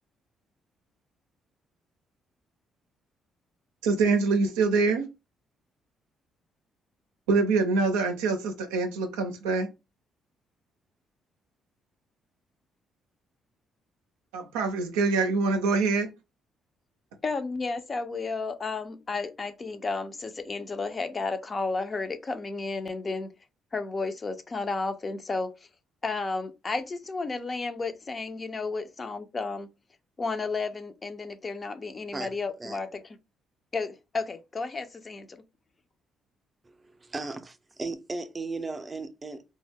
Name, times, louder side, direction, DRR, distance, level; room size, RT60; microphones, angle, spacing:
voice 1, 3.8-5.1 7.3-9.7 14.3-16.1, right 4 dB, 85° right, 0.5 m, -25 dB
voice 2, 17.2-23.3 23.7-25.5 26.0-29.7 30.2-33.0 33.7-35.4, left 3 dB, 35° left, 0.5 m, -32 dB
voice 3, 36.6-39.4, right 3 dB, 30° right, 0.5 m, -36 dB
2.2 x 2.0 x 3.3 m
hypercardioid pair, 50°, 0 cm